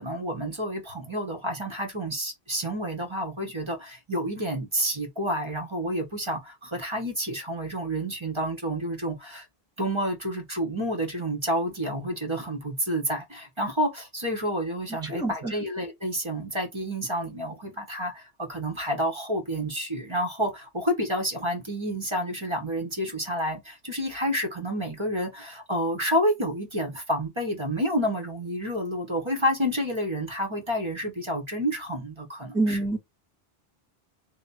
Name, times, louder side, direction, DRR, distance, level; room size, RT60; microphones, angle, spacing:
voice 1, 0.0-9.4 9.8-32.8, equal, 30° right, 1.2 m, -29 dB
voice 2, 15.1-15.5 32.5-33.0, right 2 dB, 5° right, 0.9 m, -26 dB
3.5 x 2.4 x 4.2 m
omnidirectional pair, 1.0 m